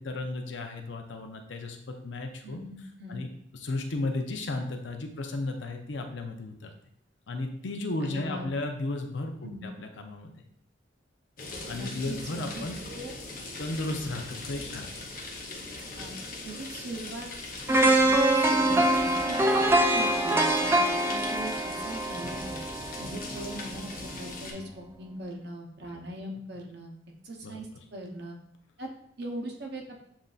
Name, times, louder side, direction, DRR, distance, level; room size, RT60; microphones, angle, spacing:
voice 1, 0.0-2.6 3.1-3.3 3.5-6.7 7.3-10.3 11.7-12.8 13.6-15.1 24.6-24.7 27.4-27.6, left 2 dB, 75° left, 4 dB, 0.6 m, -34 dB
voice 2, 2.4-3.2 8.0-8.5 9.4-9.7 11.7-13.1 15.8-16.1 16.4-17.3 17.7-19.6 19.9-22.6 23.0-26.9 27.2-28.4 28.8-28.9 29.2-30.0, right 1 dB, 60° right, 1 dB, 0.8 m, -40 dB
sound 1, 11.4-24.5, left 2 dB, 50° left, 0.8 m, -40 dB
sound 2, 17.7-23.7 24.1-24.2, right 1 dB, 15° right, 0.3 m, -24 dB
7.2 x 2.6 x 2.4 m, 0.70 s
head